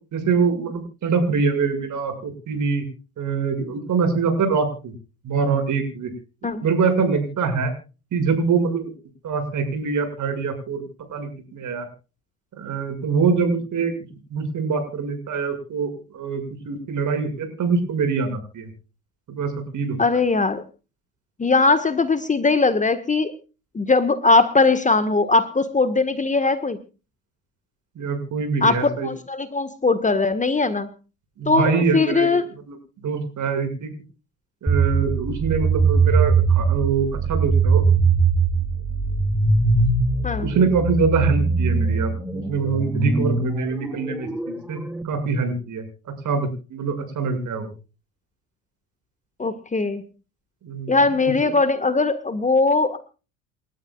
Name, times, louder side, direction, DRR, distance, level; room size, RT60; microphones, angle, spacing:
voice 1, 0.1-2.8 3.2-4.9 5.2-6.1 6.6-7.7 8.1-8.9 9.2-10.8 11.1-11.9 12.6-13.9 14.3-18.7 19.3-20.0 28.0-29.1 31.4-32.3 32.7-32.8 33.0-33.9 34.6-37.8 40.4-44.8 45.0-47.7 50.6-51.0 51.4-51.5, right 5 dB, 45° right, 8 dB, 6.8 m, -24 dB
voice 2, 20.0-20.6 21.4-23.3 23.7-26.8 28.6-30.9 31.4-32.4 40.2-40.5 49.4-50.0 50.9-53.0, left 3 dB, 20° left, 10 dB, 1.6 m, -20 dB
sound 1, 34.7-45.0, right 4 dB, 5° right, 2.7 m, -21 dB
29.0 x 13.0 x 2.5 m, 0.35 s
hypercardioid pair, 65°, 42 cm